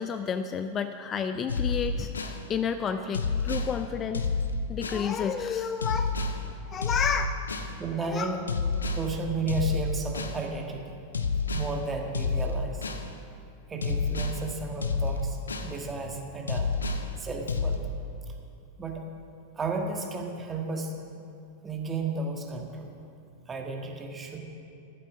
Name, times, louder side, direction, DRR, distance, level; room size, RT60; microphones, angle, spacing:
voice 1, 0.0-4.3 4.7-6.2 6.7-7.4 8.0-8.3, left 6 dB, 25° left, 9 dB, 0.4 m, -31 dB
sound 1, 1.5-2.4 3.1-3.7 4.1-5.1 5.8-6.4 6.8-7.7 8.5-9.1 9.5-10.4 11.1-11.7 12.1-13.1 13.8-14.4 14.8-15.7 16.5-17.1 17.5-17.8, left 4 dB, 75° left, 0.8 m, -29 dB
voice 2, 7.8-8.4 8.9-10.9 11.5-12.9 13.7-16.7 17.2-17.8 18.8-19.0 19.5-20.9 21.6-22.9 23.5-24.4, right 3 dB, 20° right, 3 dB, 1.6 m, -33 dB
13.0 x 9.5 x 6.2 m, 2.6 s
figure-of-eight pair, 90°, 0 cm